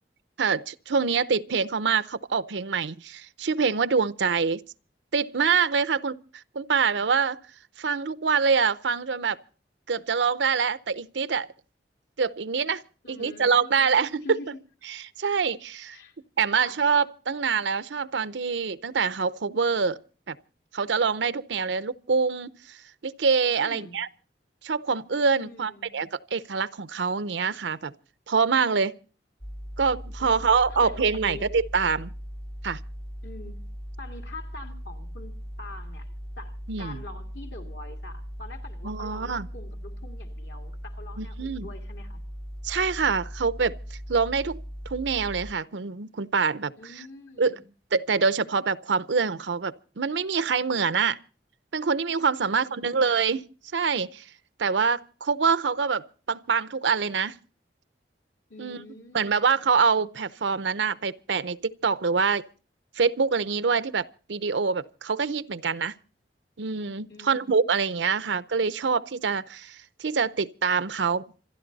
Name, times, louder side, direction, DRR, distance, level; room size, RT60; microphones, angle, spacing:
voice 1, 0.4-4.6 5.1-6.2 6.5-7.4 7.8-9.4 9.9-11.5 12.2-12.8 13.1-14.4 14.9-16.0 16.4-20.0 20.3-20.4 20.7-22.8 23.0-24.1 24.6-27.9 28.3-28.9 29.8-32.1 32.6-32.8 36.7-37.0 38.8-39.5 41.2-41.7 42.6-44.6 44.9-46.7 47.4-47.6 47.9-51.2 51.7-53.4 53.7-54.2 54.6-57.4 58.6-58.8 59.1-62.4 63.0-65.9 66.6-71.2, right 5 dB, 85° right, 0.7 m, -25 dB
voice 2, 13.0-13.9 14.2-14.6 15.9-16.1 16.5-16.8 23.6-24.0 25.4-25.9 30.2-30.4 30.7-31.5 31.7-32.0 33.2-33.6 34.0-42.2 46.8-47.6 52.4-53.2 58.5-59.5 67.1-67.4 68.1-68.4, left 2 dB, 70° left, 2.7 m, -45 dB
sound 1, 29.4-45.5, equal, 5° left, 0.7 m, -39 dB
27.0 x 11.0 x 4.0 m
head